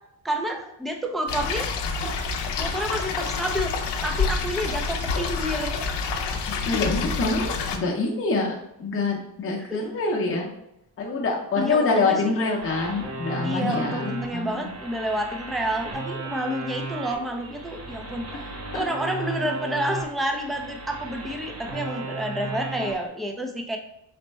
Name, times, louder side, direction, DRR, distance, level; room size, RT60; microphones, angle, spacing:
voice 1, 0.2-1.7 2.6-3.8 4.0-5.8 11.6-12.3 13.4-18.3 18.7-23.8, right 1 dB, ahead, 3 dB, 0.3 m, -29 dB
sound 1, 1.3-7.8, left 4 dB, 75° left, 0.6 m, -28 dB
voice 2, 6.5-10.5 11.0-14.7 18.3-18.4 18.7-18.8, left 3 dB, 30° left, -1 dB, 0.6 m, -26 dB
sound 2, 12.6-23.1, right 3 dB, 35° right, 1.0 m, -35 dB
4.1 x 2.1 x 4.5 m, 0.82 s
cardioid pair, 135°, 42 cm